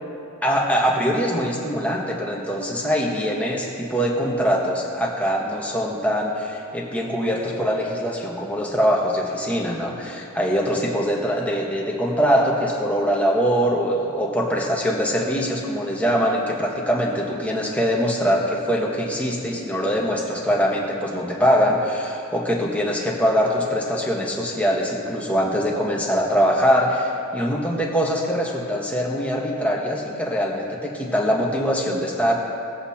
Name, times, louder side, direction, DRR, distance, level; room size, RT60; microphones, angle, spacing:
voice 1, 0.4-32.3, equal, 5° left, -3 dB, 1.3 m, -23 dB
19.0 x 7.9 x 2.9 m, 2.7 s
head